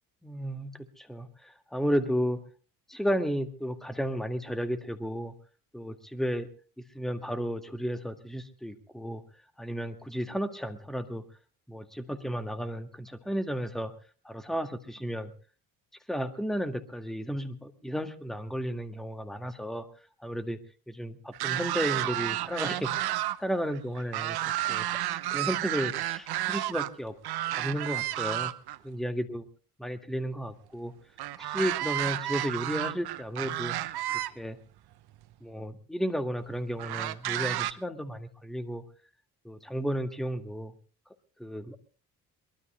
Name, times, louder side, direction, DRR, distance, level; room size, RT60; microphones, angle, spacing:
voice 1, 0.2-2.4 2.9-5.3 5.7-6.5 6.9-9.2 9.6-11.2 11.7-13.9 14.3-15.3 16.1-19.9 20.2-20.6 20.9-22.9 23.4-25.0 25.3-27.2 27.5-28.5 28.8-29.4 29.8-30.9 31.4-33.8 34.3-34.6 35.4-38.8 39.4-40.7 41.4-41.8, equal, ahead, 9 dB, 1.9 m, -33 dB
sound 1, 21.3-23.4 23.7-26.9 27.2-28.8 31.2-34.3 35.2-35.3 36.8-37.7, right 15 dB, 50° right, 1.0 m, -31 dB
23.0 x 22.5 x 2.2 m, 0.37 s
figure-of-eight pair, 50°, 48 cm